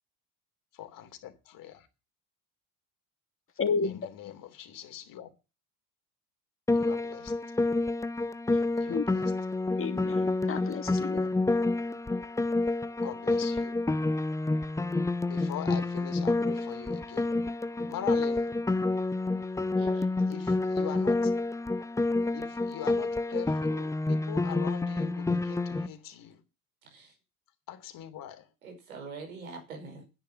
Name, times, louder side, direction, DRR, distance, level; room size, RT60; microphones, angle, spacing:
voice 1, 0.8-1.9 3.8-4.3 4.6-5.3 6.7-7.3 8.8-9.3 11.1-11.3 13.0-13.8 15.2-17.4 17.9-18.6 20.3-21.3 22.3-26.4 27.7-28.5, left 11 dB, 50° left, 3.3 m, -42 dB
voice 2, 3.6-4.0 8.9-9.1 9.8-11.3, left 5 dB, 30° left, 2.6 m, -31 dB
Piano, 6.7-25.9, left 2 dB, 5° left, 0.8 m, -28 dB
voice 3, 19.8-20.1 26.8-27.1 28.6-30.0, right 4 dB, 85° right, 5.5 m, -44 dB
10.5 x 10.0 x 7.1 m
hypercardioid pair, 70°, 41 cm